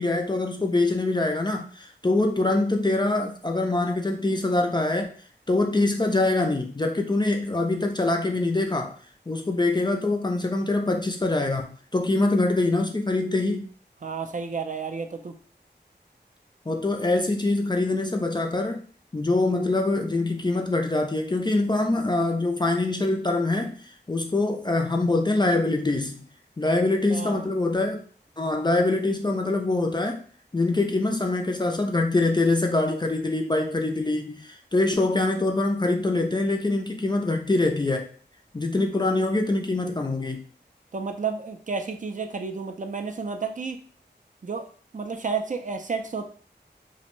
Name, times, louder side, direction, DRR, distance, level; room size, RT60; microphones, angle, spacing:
voice 1, 0.0-5.1 5.5-8.9 9.3-13.7 16.7-18.8 19.1-23.8 24.1-26.3 26.6-28.0 28.4-30.2 30.5-38.1 38.5-40.4, left 2 dB, 25° left, 2 dB, 0.3 m, -24 dB
voice 2, 14.0-15.4 26.7-26.8 27.1-27.5 40.9-43.8 44.4-44.7 44.9-46.2, right 5 dB, 45° right, 6 dB, 0.4 m, -31 dB
2.5 x 2.1 x 2.9 m, 0.43 s
wide cardioid pair, 60°, 19 cm